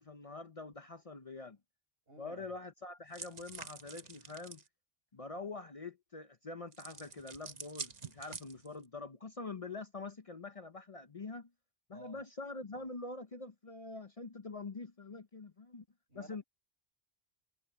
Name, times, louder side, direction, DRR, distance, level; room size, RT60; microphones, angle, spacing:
voice 1, 0.0-1.6 2.2-4.6 5.1-11.5 11.9-15.8 16.1-16.4, left 3 dB, 35° left, 0.8 m, -45 dB
voice 2, 2.1-2.6 11.9-12.2 16.1-16.4, right 2 dB, 70° right, 8.4 m, -54 dB
sound 1, 3.1-4.7 6.7-8.8, right 5 dB, 45° right, 1.1 m, -47 dB
omnidirectional pair, 1.1 m